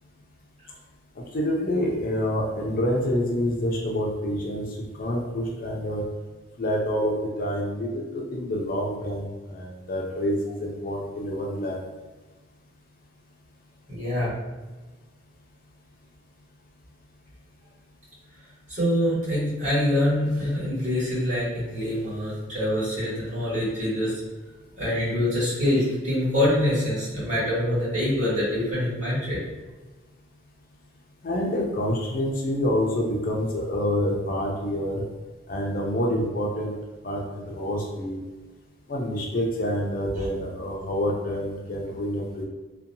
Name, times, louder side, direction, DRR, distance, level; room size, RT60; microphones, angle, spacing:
voice 1, 1.2-6.0 6.6-11.8 31.2-35.0 35.5-36.7 37.0-38.2 38.9-42.4, equal, 45° left, -1 dB, 0.4 m, -27 dB
voice 2, 13.9-14.3 18.7-24.1 24.8-29.4, left 1 dB, 35° right, -10 dB, 1.3 m, -25 dB
2.6 x 2.2 x 2.6 m, 1.2 s
head